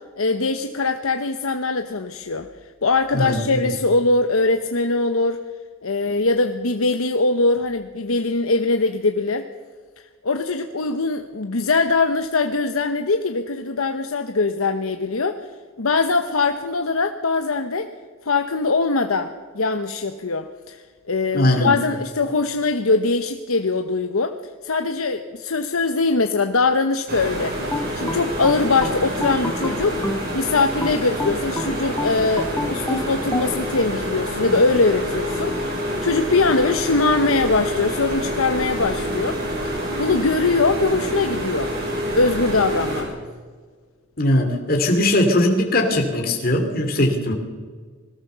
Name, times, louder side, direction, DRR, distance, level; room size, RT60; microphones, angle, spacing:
voice 1, 0.2-2.5 2.8-5.4 5.8-9.5 10.2-15.4 15.8-17.9 18.2-24.4 24.6-27.5 27.9-30.0 30.3-39.4 39.6-41.7 42.1-43.1, left 3 dB, 85° left, 7 dB, 1.0 m, -22 dB
voice 2, 3.1-3.6 21.3-21.7 44.2-47.3, left 1 dB, 45° left, 2 dB, 2.9 m, -20 dB
sound 1, 27.1-43.0, equal, 45° right, 6.9 m, -27 dB
sound 2, 27.7-30.3 30.8-33.5, left 1 dB, 10° left, 0.7 m, -28 dB
21.5 x 18.0 x 6.9 m, 1.5 s
head